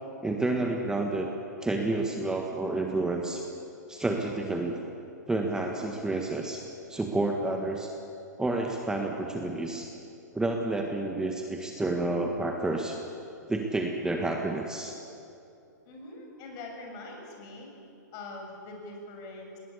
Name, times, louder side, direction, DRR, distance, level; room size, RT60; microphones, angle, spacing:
voice 1, 0.2-1.3 1.6-3.5 3.9-4.8 5.3-7.9 8.4-9.9 10.3-13.0 13.5-15.0, right 2 dB, 5° right, 2 dB, 1.6 m, -30 dB
voice 2, 15.8-17.7 18.1-19.6, left 2 dB, 40° left, 1 dB, 6.7 m, -43 dB
20.5 x 19.5 x 8.4 m, 2.7 s
hypercardioid pair, 125°, 10 cm